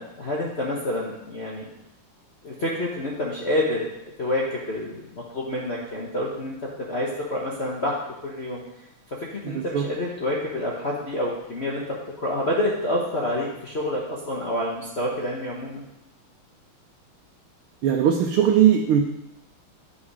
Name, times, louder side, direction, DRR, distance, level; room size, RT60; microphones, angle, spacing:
voice 1, 0.0-1.6 2.4-3.8 4.2-8.6 9.2-11.8 12.2-15.8, left 1 dB, 40° left, -3 dB, 1.1 m, -28 dB
voice 2, 9.4-9.8 17.8-19.0, right 9 dB, 75° right, 2 dB, 1.6 m, -19 dB
8.9 x 5.6 x 4.8 m, 0.90 s
omnidirectional pair, 2.4 m